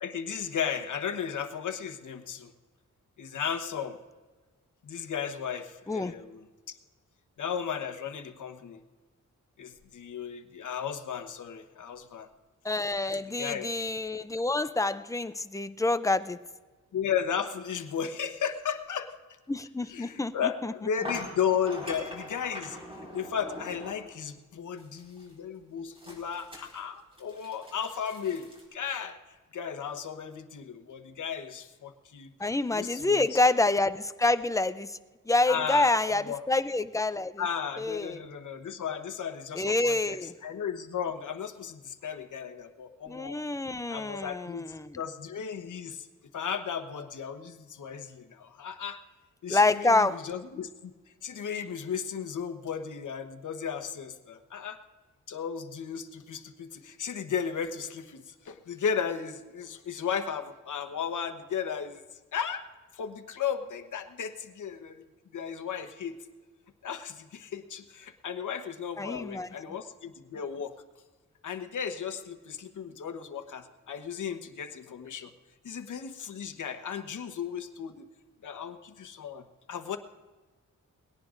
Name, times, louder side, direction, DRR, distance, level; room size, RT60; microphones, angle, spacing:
voice 1, 0.0-2.5 3.2-4.0 4.8-6.8 7.4-8.8 9.6-12.3 13.4-13.7 16.9-19.2 19.9-22.8 23.1-32.3 32.7-33.4 35.5-36.4 37.4-43.4 43.9-46.1 46.3-49.0 49.4-50.9 51.2-54.8 55.3-62.7 62.9-65.1 65.3-66.2 66.8-70.7 71.4-75.3 75.6-78.1 78.4-80.0, left 7 dB, 70° left, 8 dB, 1.1 m, -35 dB
voice 2, 12.6-16.4 19.5-20.7 32.4-35.0 35.3-37.4 37.8-38.2 39.5-40.3 43.1-45.0 49.5-50.2 69.0-69.5, left 2 dB, 10° left, 12 dB, 0.4 m, -27 dB
sound 1, 20.1-20.2 21.1-24.1 24.8-25.3 26.0-28.6, left 1 dB, 15° right, 4.3 m, -43 dB
20.5 x 18.0 x 2.6 m, 1.3 s
wide cardioid pair, 160°, 31 cm